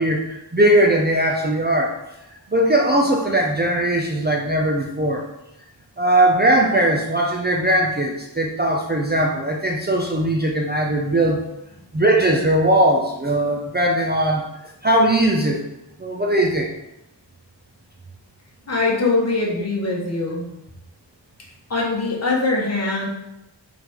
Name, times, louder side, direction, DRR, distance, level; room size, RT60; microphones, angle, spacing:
voice 1, 0.0-1.9 2.5-5.2 6.0-11.5 11.9-14.4 14.8-15.6 16.0-16.7, right 1 dB, 20° right, -1 dB, 0.5 m, -19 dB
voice 2, 18.7-20.5 21.7-23.1, left 3 dB, 35° left, -3 dB, 1.4 m, -22 dB
5.7 x 4.7 x 3.6 m, 0.90 s
wide cardioid pair, 165°, 45 cm